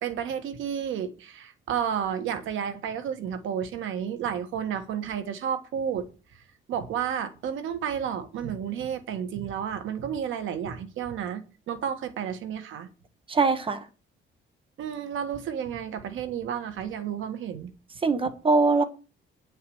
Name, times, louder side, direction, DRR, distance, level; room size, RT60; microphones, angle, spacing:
voice 1, 0.0-6.1 6.7-12.9 14.8-17.7, right 8 dB, 80° right, 1.7 m, -31 dB
voice 2, 13.3-13.8 18.0-18.8, right 3 dB, 25° right, 1.1 m, -22 dB
9.8 x 5.4 x 7.9 m
cardioid pair, 155°, 20 cm